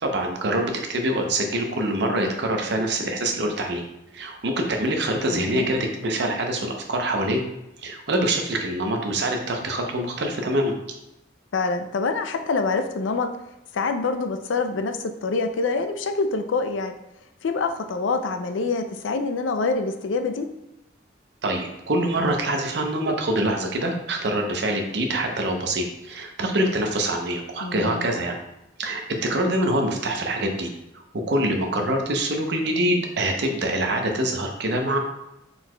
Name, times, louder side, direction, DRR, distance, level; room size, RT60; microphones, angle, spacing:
voice 1, 0.0-3.8 4.1-7.4 7.8-10.7 21.4-28.4 28.8-30.7 30.9-35.0, right 1 dB, 60° right, 3 dB, 0.7 m, -25 dB
voice 2, 5.3-5.7 11.5-13.3 13.7-16.9 17.4-20.5 27.6-28.1, left 4 dB, 80° left, 7 dB, 0.4 m, -26 dB
4.5 x 4.0 x 2.2 m, 0.91 s
head